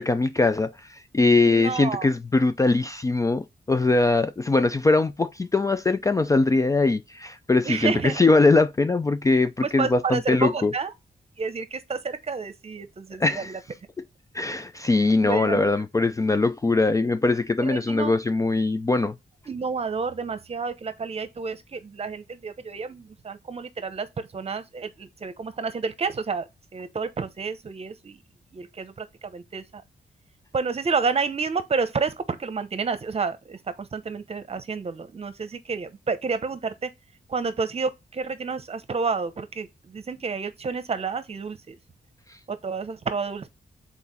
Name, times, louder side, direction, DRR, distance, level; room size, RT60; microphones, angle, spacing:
voice 1, 0.0-10.7 13.2-13.5 14.3-19.1 42.3-42.4, left 3 dB, 20° left, 0.3 m, -21 dB
voice 2, 1.3-2.1 7.6-8.2 9.6-10.9 11.4-13.6 15.2-15.7 17.6-18.2 19.5-28.2 28.5-29.8 30.5-36.9 37.3-41.8 42.5-43.5, right 5 dB, 40° right, 0.9 m, -30 dB
4.6 x 4.2 x 5.4 m
wide cardioid pair, 135°, 16 cm